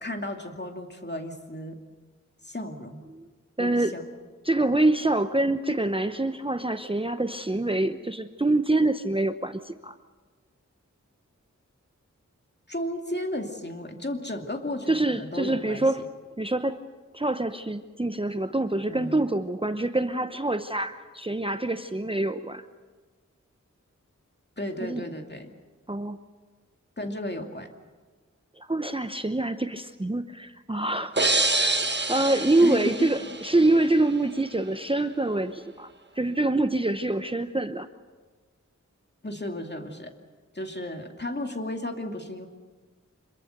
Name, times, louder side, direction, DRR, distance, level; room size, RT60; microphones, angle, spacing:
voice 1, 0.0-1.7 2.4-3.0 3.6-4.0 12.7-16.1 18.9-19.2 24.6-25.5 27.0-27.7 32.6-32.9 39.2-40.1 40.5-42.5, left 1 dB, 35° left, 4 dB, 2.6 m, -34 dB
voice 2, 3.6-3.9 4.4-10.0 14.9-16.1 16.4-16.8 17.1-22.6 24.8-25.0 25.9-26.2 28.6-31.1 32.1-35.9 36.2-37.9, right 2 dB, 20° right, 9 dB, 0.8 m, -25 dB
sound 1, 31.2-33.9, right 2 dB, 35° right, 1.6 m, -26 dB
26.0 x 22.5 x 6.7 m, 1.4 s
wide cardioid pair, 55°, 30 cm